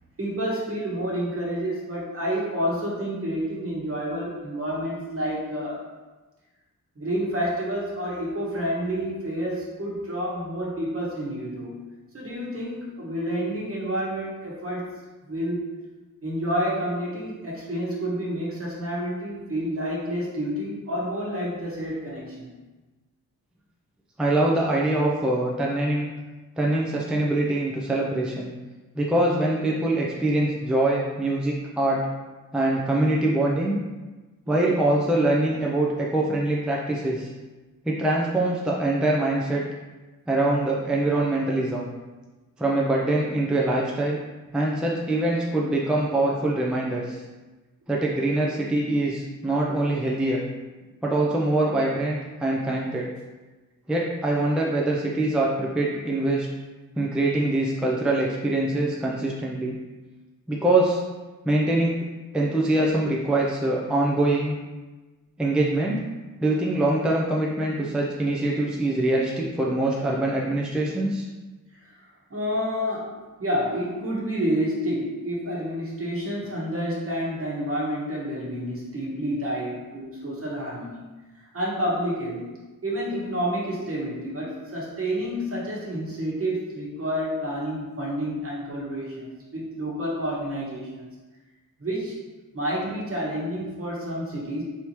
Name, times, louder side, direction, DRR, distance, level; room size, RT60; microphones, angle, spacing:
voice 1, 0.2-5.8 6.9-11.7 12.1-14.9 15.2-15.7 16.2-22.5 71.8-72.0 72.3-81.0 81.5-82.4 82.8-91.1 91.8-92.2 92.5-94.6, equal, 45° right, -5 dB, 1.2 m, -29 dB
voice 2, 24.2-26.1 26.6-28.5 29.0-32.1 32.5-33.7 34.5-37.3 37.9-39.6 40.3-41.9 42.6-44.2 44.5-47.2 47.9-50.4 51.0-53.1 53.9-56.5 57.0-59.8 60.5-61.0 61.5-62.0 62.3-64.6 65.4-66.0 66.4-71.3, right 2 dB, 5° right, -3 dB, 0.4 m, -24 dB
3.4 x 2.8 x 3.0 m, 1.2 s
cardioid pair, 65°, 33 cm